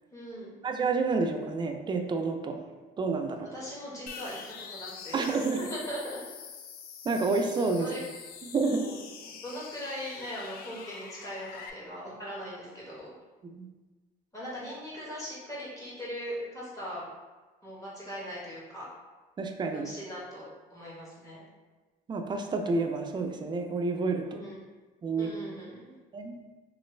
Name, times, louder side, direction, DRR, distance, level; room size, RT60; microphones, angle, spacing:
voice 1, 0.1-0.5 3.4-4.4 4.7-6.2 7.8-8.0 8.7-9.0 9.2-13.1 14.3-17.1 17.6-18.8 19.7-21.4 24.3-24.6 25.2-26.0, equal, 20° left, -7 dB, 1.2 m, -40 dB
voice 2, 0.6-2.6 3.0-3.5 5.1-5.6 7.0-7.9 8.5-8.9 13.5-13.7 19.4-19.9 22.1-24.4 25.0-25.3 26.1-26.4, right 3 dB, 25° right, 4 dB, 0.4 m, -29 dB
sound 1, 4.1-11.7, left 6 dB, 60° left, 0.4 m, -45 dB
3.0 x 2.5 x 3.2 m, 1.2 s
cardioid pair, 110°, 17 cm